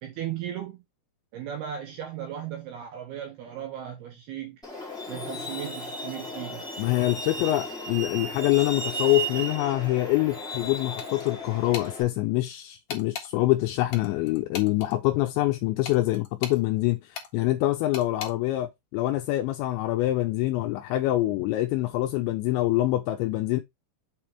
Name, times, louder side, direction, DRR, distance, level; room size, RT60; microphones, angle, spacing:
voice 1, 0.0-0.8 1.3-4.6 5.1-6.6, right 10 dB, 75° right, 2.4 m, -36 dB
Truck, 4.6-12.0, right 1 dB, 5° left, 0.3 m, -35 dB
voice 2, 6.8-23.6, left 17 dB, 85° left, 2.6 m, -25 dB
sound 1, 11.0-11.3 11.7-11.9 12.9-13.3 13.9-14.9 15.8-16.6 17.1-17.3 17.9-18.3, left 7 dB, 65° left, 1.8 m, -37 dB
7.8 x 3.5 x 4.4 m
omnidirectional pair, 5.8 m